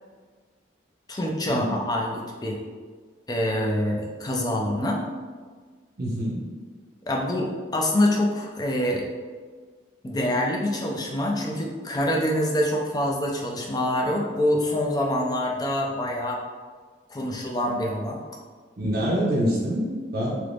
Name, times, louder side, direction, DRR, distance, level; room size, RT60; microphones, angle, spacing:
voice 1, 1.1-2.6 3.3-5.0 7.1-9.0 10.0-16.4 17.1-18.2, left 1 dB, 20° left, -1 dB, 0.4 m, -25 dB
voice 2, 6.0-6.4 18.8-19.9 20.1-20.4, equal, 50° right, -5 dB, 0.5 m, -25 dB
2.9 x 2.5 x 3.4 m, 1.5 s
head